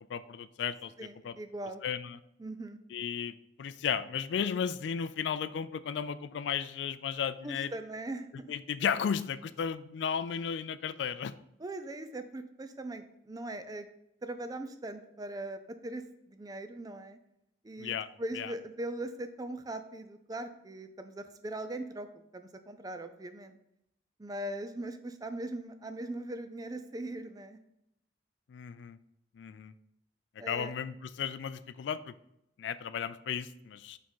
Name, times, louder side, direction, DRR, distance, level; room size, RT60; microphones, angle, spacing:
voice 1, 0.1-0.9 1.2-1.4 1.8-2.2 2.9-7.7 8.5-11.3 17.8-18.1 18.3-18.5 28.5-29.0 29.4-29.7 30.4-32.1 32.6-34.0, left 7 dB, 85° left, 15 dB, 0.3 m, -34 dB
voice 2, 1.0-1.8 2.4-2.8 7.4-8.5 11.6-13.9 14.2-16.0 16.3-17.2 17.6-22.1 22.3-23.6 24.2-27.6 30.4-30.7, right 1 dB, 20° right, 9 dB, 0.4 m, -40 dB
5.1 x 3.6 x 5.4 m, 0.79 s
head